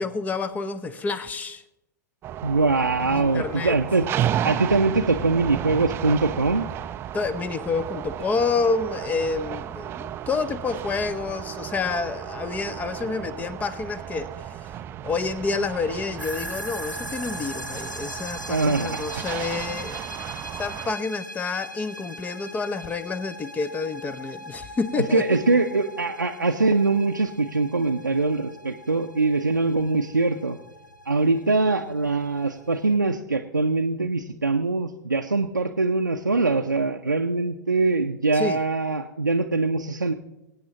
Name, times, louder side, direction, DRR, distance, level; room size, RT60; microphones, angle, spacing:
voice 1, 0.0-1.6 3.0-3.8 7.1-14.3 15.0-20.3 20.6-25.2 38.3-38.6, left 4 dB, 15° left, 16 dB, 0.6 m, -28 dB
sound 1, 2.2-20.9, right 11 dB, 25° right, 0.4 m, -33 dB
voice 2, 2.4-4.1 4.4-6.7 18.5-19.2 25.0-30.6 31.1-40.1, right 3 dB, 85° right, 2 dB, 0.5 m, -23 dB
sound 2, 16.2-33.0, equal, 90° left, 0.8 m, -40 dB
23.0 x 8.7 x 2.9 m, 0.93 s
figure-of-eight pair, 100°, 10 cm